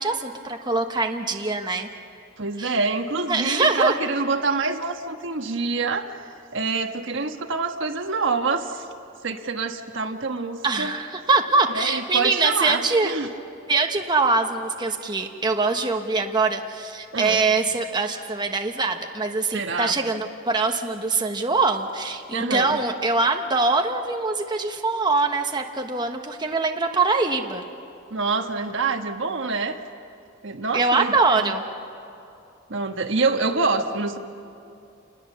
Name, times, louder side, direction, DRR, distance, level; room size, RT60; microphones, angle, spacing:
voice 1, 0.0-1.9 2.6-2.7 3.3-4.1 10.6-13.1 13.7-27.6 30.7-31.6, right 3 dB, 20° right, 3 dB, 1.1 m, -23 dB
voice 2, 2.4-6.2 6.5-8.8 9.2-11.0 11.7-13.3 17.1-17.4 19.5-20.0 22.3-22.8 28.1-29.8 30.4-31.5 32.7-34.2, right 4 dB, 65° right, 5 dB, 1.3 m, -26 dB
28.5 x 20.5 x 7.0 m, 2.6 s
head